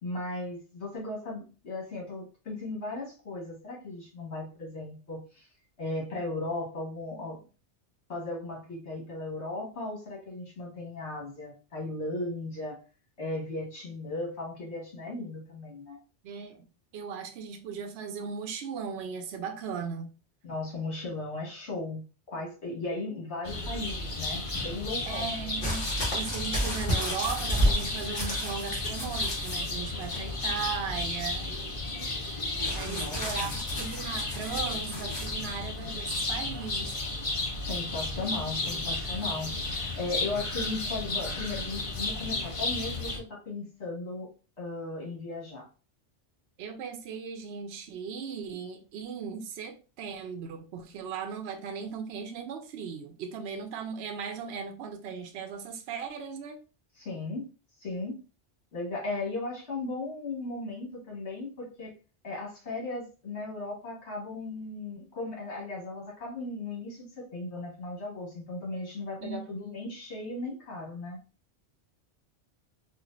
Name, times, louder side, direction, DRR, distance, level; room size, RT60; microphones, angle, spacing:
voice 1, 0.0-5.5 5.8-7.4 8.1-12.8 13.2-16.0 20.4-22.0 22.3-25.3 32.9-33.5 37.6-39.5 39.9-44.3 44.6-45.7 56.9-57.5 57.8-58.2 58.7-61.9 62.2-71.2, left 2 dB, 70° left, 1.6 m, -36 dB
voice 2, 16.2-16.7 16.9-20.1 25.0-25.9 26.1-32.1 32.7-36.9 46.6-56.6 69.2-69.6, right 6 dB, 70° right, 0.8 m, -37 dB
sound 1, 23.4-43.2, left 2 dB, 35° left, 0.6 m, -33 dB
sound 2, 25.6-29.7 30.0-30.6 32.6-35.3 36.2-36.3, equal, 50° left, 1.5 m, -32 dB
4.4 x 2.4 x 2.4 m
omnidirectional pair, 1.2 m